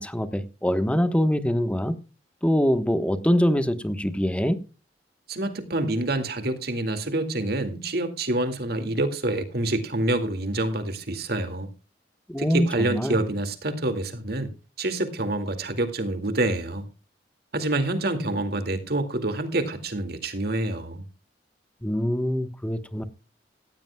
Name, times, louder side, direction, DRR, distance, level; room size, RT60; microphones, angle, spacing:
voice 1, 0.0-2.0 2.4-4.6 12.3-13.2 21.8-23.0, equal, 5° left, 1.1 m, -24 dB
voice 2, 5.3-11.7 12.4-14.5 14.8-16.9 17.5-21.0, right 2 dB, 60° right, 2.2 m, -27 dB
17.0 x 15.5 x 2.3 m
head